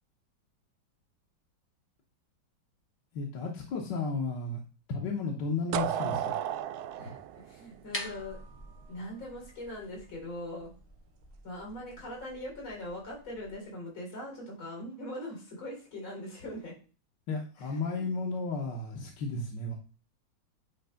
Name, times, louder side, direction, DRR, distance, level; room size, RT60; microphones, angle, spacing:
voice 1, 3.1-4.6 4.9-6.3 17.3-19.7, left 3 dB, 65° left, -1 dB, 1.7 m, -33 dB
sound 1, 5.7-8.6, right 10 dB, 75° right, 0.9 m, -33 dB
voice 2, 6.9-8.4 8.9-10.7 11.4-16.7, left 1 dB, 85° left, -2 dB, 4.8 m, -41 dB
sound 2, 7.6-13.6, equal, 15° left, 0.5 m, -46 dB
8.8 x 3.3 x 5.7 m, 0.36 s
omnidirectional pair, 2.1 m